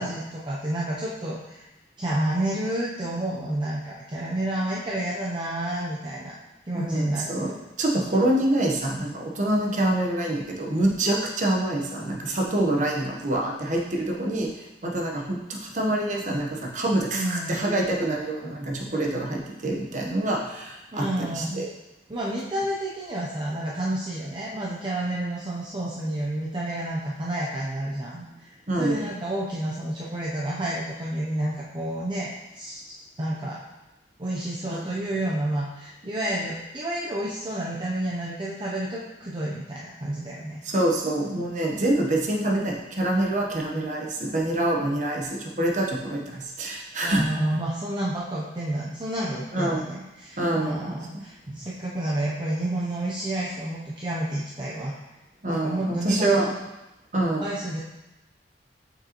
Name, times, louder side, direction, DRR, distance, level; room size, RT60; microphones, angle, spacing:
voice 1, 0.0-1.7 2.0-6.3 6.7-7.3 17.1-17.6 20.9-21.7 22.1-32.8 33.2-33.6 34.2-40.6 47.0-55.0 55.4-56.5 57.4-57.8, right 1 dB, 25° right, -5 dB, 0.6 m, -30 dB
voice 2, 6.7-14.5 14.8-21.7 28.7-29.1 34.7-34.8 40.6-47.2 49.5-49.9 50.4-51.2 55.4-56.5 57.1-57.4, right 1 dB, 45° right, -1 dB, 1.0 m, -26 dB
6.6 x 5.4 x 3.0 m, 0.98 s
head